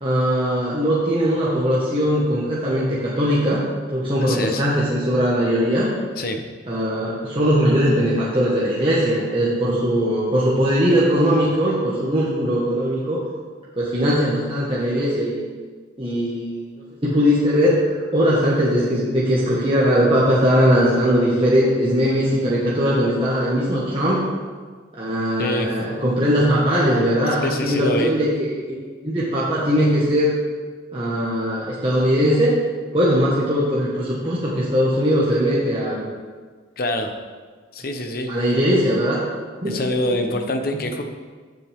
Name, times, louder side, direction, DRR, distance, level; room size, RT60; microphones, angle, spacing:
voice 1, 0.0-3.6 3.9-5.9 6.7-13.2 13.8-15.5 16.0-16.8 17.0-24.2 24.9-28.8 29.0-30.3 30.9-32.6 32.9-36.0 38.3-39.2 39.6-39.8, equal, 25° right, -7 dB, 1.7 m, -20 dB
voice 2, 4.2-4.6 6.2-6.4 25.4-25.7 27.4-28.1 36.8-37.1 37.7-38.3 39.7-41.0, left 1 dB, 50° left, 5 dB, 1.0 m, -25 dB
16.0 x 7.7 x 3.7 m, 1.5 s
head